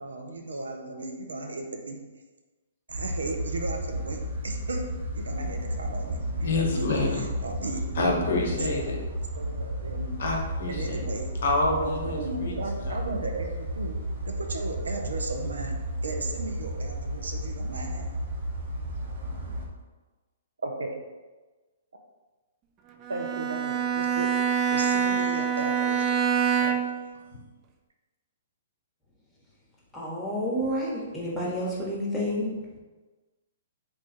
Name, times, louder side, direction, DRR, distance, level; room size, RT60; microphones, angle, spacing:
voice 1, 0.0-2.0 2.9-4.8 5.1-6.9 7.4-9.1 9.4-10.2 10.6-11.3 11.8-14.0 14.3-15.7 16.0-18.2 20.6-21.0 23.1-24.3 24.7-26.1, right 2 dB, 90° right, 3 dB, 0.6 m, -35 dB
sound 1, 2.9-19.7, right 1 dB, 55° right, 0.8 m, -33 dB
voice 2, 6.4-7.2 8.0-9.0 10.2-11.0 11.4-12.5 12.8-12.9 26.6-26.7, left 2 dB, 65° left, 0 dB, 0.9 m, -27 dB
Bowed string instrument, 23.0-27.1, right 7 dB, 30° right, 0.3 m, -25 dB
voice 3, 29.9-32.5, equal, 5° left, -5 dB, 1.1 m, -29 dB
3.2 x 2.3 x 4.2 m, 1.2 s
hypercardioid pair, 140°, 0 cm